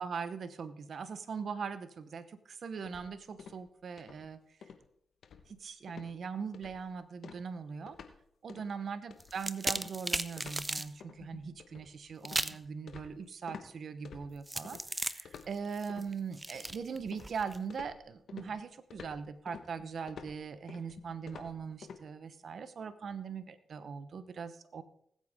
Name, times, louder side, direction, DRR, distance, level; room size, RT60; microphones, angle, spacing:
voice 1, 0.0-4.4 5.5-8.0 8.4-24.8, right 6 dB, 70° right, 12 dB, 0.9 m, -41 dB
sound 1, 2.8-3.7 4.0-4.3 4.6-4.8 5.2-5.6 5.9-6.1 6.5-6.9 7.2-8.2 8.5-8.7 9.1-13.7 14.0-14.8 15.2-16.1 16.5-17.4 17.7-22.0, left 6 dB, 80° left, 1.2 m, -50 dB
sound 2, 9.2-10.9 12.2-12.7 14.5-17.6, right 2 dB, 20° right, 0.7 m, -36 dB
19.5 x 8.4 x 3.6 m, 0.69 s
cardioid pair, 50°, 0 cm